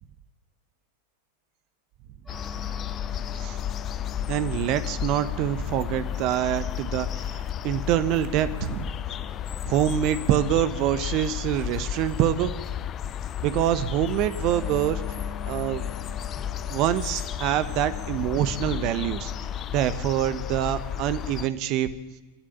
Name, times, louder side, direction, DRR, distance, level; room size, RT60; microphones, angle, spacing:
sound 1, 2.2-19.4, left 4 dB, ahead, 6.1 m, -46 dB
sound 2, 2.3-21.5, left 10 dB, 30° left, 0.7 m, -33 dB
voice 1, 4.3-8.9 9.7-12.5 13.4-15.0 15.5-15.8 16.7-19.3 19.7-21.9, right 11 dB, 40° right, 13 dB, 1.0 m, -25 dB
28.0 x 11.5 x 8.9 m, 1.1 s
figure-of-eight pair, 90°, 0 cm